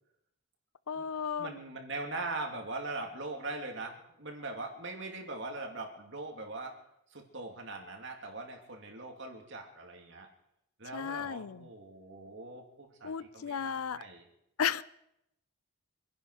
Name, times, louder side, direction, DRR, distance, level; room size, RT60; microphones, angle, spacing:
voice 1, 0.9-1.6 10.9-11.7 13.0-14.0 14.6-14.8, left 7 dB, 85° left, 18 dB, 0.5 m, -34 dB
voice 2, 1.4-6.7 7.1-10.3 10.8-14.2, right 2 dB, 55° right, 2 dB, 2.8 m, -41 dB
26.5 x 10.5 x 4.9 m, 0.81 s
head